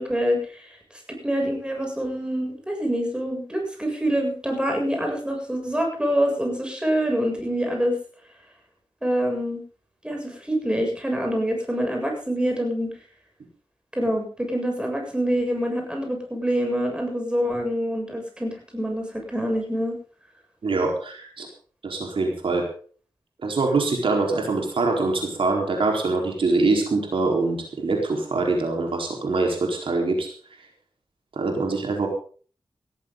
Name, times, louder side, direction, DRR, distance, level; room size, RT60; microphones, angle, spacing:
voice 1, 0.0-8.0 9.0-9.6 10.0-12.9 13.9-20.0, equal, 10° right, 2 dB, 7.4 m, -26 dB
voice 2, 20.6-21.5 21.8-22.6 23.4-30.3 31.4-32.1, right 3 dB, 80° right, 1 dB, 4.5 m, -24 dB
18.0 x 15.0 x 4.0 m, 0.43 s
wide cardioid pair, 80°, 9 cm